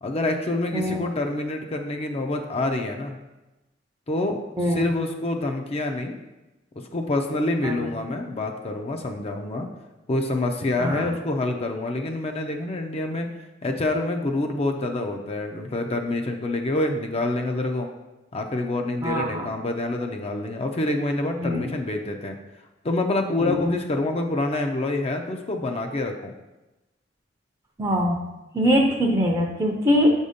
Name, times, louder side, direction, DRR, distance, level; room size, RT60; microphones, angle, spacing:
voice 1, 0.0-3.2 4.1-4.4 4.7-6.1 6.9-9.7 10.1-13.3 13.6-17.9 18.3-22.4 22.8-26.3, left 2 dB, 35° left, 4 dB, 0.5 m, -26 dB
voice 2, 0.7-1.1 4.6-4.9 7.6-7.8 10.8-11.1 19.0-19.5 21.4-21.7 23.4-23.6 27.8-28.2 28.5-30.1, equal, 20° right, 1 dB, 0.6 m, -22 dB
7.0 x 2.7 x 5.0 m, 1.0 s
head